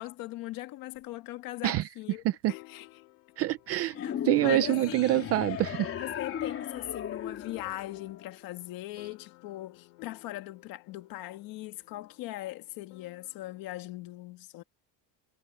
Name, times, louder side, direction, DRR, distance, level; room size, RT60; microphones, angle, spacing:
voice 1, 0.0-2.2 2.5-2.9 3.8-5.3 6.0-14.6, left 17 dB, 45° left, 1.6 m, -40 dB
sound 1, 0.9-1.0 2.5-13.7, left 29 dB, 75° left, 6.6 m, -54 dB
voice 2, 3.4-4.0 4.3-5.9, right 16 dB, 30° right, 0.4 m, -26 dB
sound 2, 3.9-8.5, left 9 dB, 30° left, 3.0 m, -36 dB
cardioid pair, 180°, 48 cm